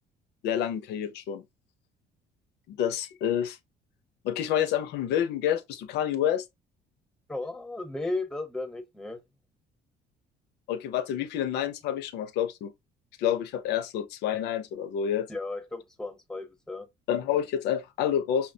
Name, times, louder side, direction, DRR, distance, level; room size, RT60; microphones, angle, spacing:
voice 1, 0.4-1.4 2.7-3.6 4.2-6.4 10.7-12.7 13.2-15.3 17.1-18.5, left 10 dB, 85° left, 0.7 m, -28 dB
voice 2, 7.3-9.2 15.3-16.9, left 2 dB, 5° left, 1.0 m, -35 dB
5.6 x 2.2 x 2.7 m
cardioid pair, 110°, 17 cm